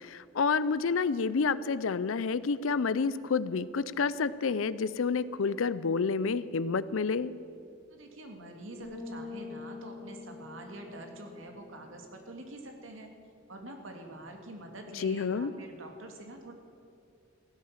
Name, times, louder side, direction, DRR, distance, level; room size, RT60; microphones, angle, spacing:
voice 1, 0.0-7.3 15.0-15.5, left 5 dB, 85° left, 17 dB, 0.5 m, -29 dB
voice 2, 7.9-13.1 13.5-16.5, right 1 dB, 75° right, 3 dB, 2.1 m, -45 dB
sound 1, 8.8-12.5, left 4 dB, 15° left, 5.0 m, -45 dB
15.5 x 11.5 x 7.2 m, 2.5 s
head